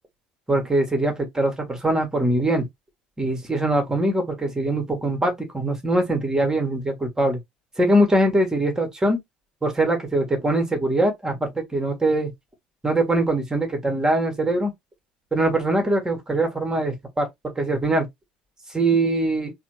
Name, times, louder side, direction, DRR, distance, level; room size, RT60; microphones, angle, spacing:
voice 1, 0.5-2.7 3.2-7.4 7.8-9.2 9.6-12.3 12.8-14.7 15.3-17.3 17.5-18.1 18.7-19.5, right 1 dB, 15° right, 1.6 m, -22 dB
4.1 x 2.5 x 3.1 m
figure-of-eight pair, 60°, 4 cm